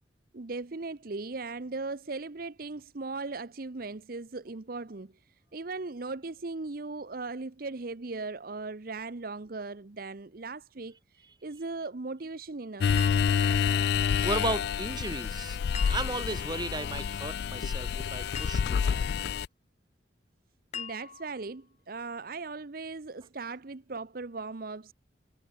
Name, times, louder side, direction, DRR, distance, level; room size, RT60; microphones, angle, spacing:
voice 1, 0.3-12.9 20.7-24.9, right 3 dB, 55° right, 0.8 m, -38 dB
sound 1, 12.8-19.5, left 7 dB, 60° left, 0.3 m, -28 dB
sound 2, 13.0-13.9 15.7-16.5 18.3-19.0 20.7-21.5, left 7 dB, 40° left, 2.0 m, -42 dB
voice 2, 14.2-15.6 15.9-19.1, right 2 dB, 25° right, 3.1 m, -35 dB
head